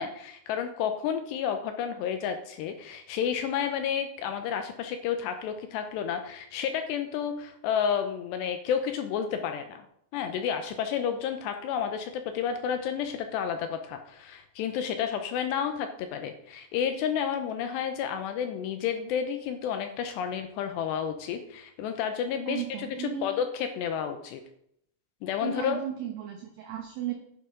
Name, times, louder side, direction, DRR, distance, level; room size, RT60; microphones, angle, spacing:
voice 1, 0.0-9.8 10.1-24.4 25.2-25.8, left 8 dB, 80° left, 7 dB, 2.6 m, -31 dB
voice 2, 22.5-23.3 25.4-27.1, right 10 dB, 70° right, 1 dB, 2.2 m, -35 dB
11.0 x 10.0 x 3.8 m, 0.72 s
omnidirectional pair, 5.5 m